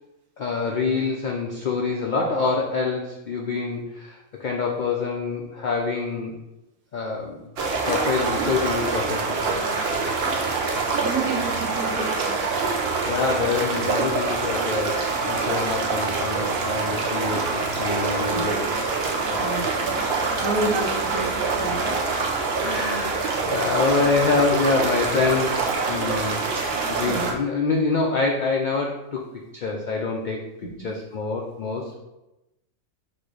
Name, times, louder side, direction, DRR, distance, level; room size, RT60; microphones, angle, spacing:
voice 1, 0.4-6.3 6.9-7.4 7.8-9.6 12.7-18.7 19.3-19.5 22.6-29.2 29.5-30.4 30.8-31.9, left 4 dB, 75° left, 0 dB, 0.4 m, -26 dB
sound 1, 7.6-27.3, right 4 dB, 55° right, 0.8 m, -25 dB
voice 2, 10.5-12.4 18.2-18.4 19.4-20.0 20.4-22.0 27.1-27.2 30.6-30.9, right 3 dB, 85° right, 1 dB, 1.3 m, -30 dB
4.3 x 2.6 x 4.6 m, 0.97 s
omnidirectional pair, 1.4 m